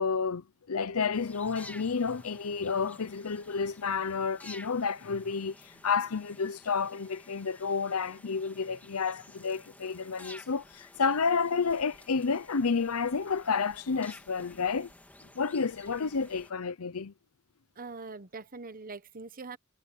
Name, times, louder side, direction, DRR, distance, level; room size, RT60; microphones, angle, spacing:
voice 1, 0.0-14.9 15.3-17.1, left 5 dB, 80° left, 0.7 m, -30 dB
sound 1, 1.1-16.5, left 1 dB, 10° left, 2.2 m, -53 dB
voice 2, 17.8-19.6, right 4 dB, 40° right, 1.2 m, -42 dB
head